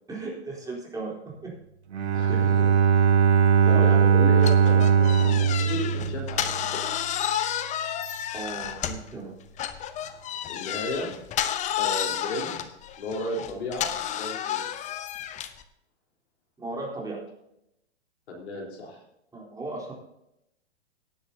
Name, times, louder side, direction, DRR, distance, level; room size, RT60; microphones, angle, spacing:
voice 1, 0.1-1.1 1.4-1.5 2.3-2.7 3.6-4.1 8.3-9.3 16.6-17.2 19.3-19.9, right 3 dB, 10° right, -4 dB, 3.8 m, -36 dB
Bowed string instrument, 1.9-6.7, right 7 dB, 80° right, 1.4 m, -20 dB
voice 2, 2.1-2.7 3.7-7.1 10.5-11.1 11.7-14.6 18.3-19.0, left 1 dB, 75° left, -1 dB, 4.1 m, -34 dB
sound 1, 4.4-9.1 9.6-15.6, left 10 dB, 20° left, 0.7 m, -31 dB
18.0 x 10.0 x 2.8 m, 0.83 s
hypercardioid pair, 120°, 33 cm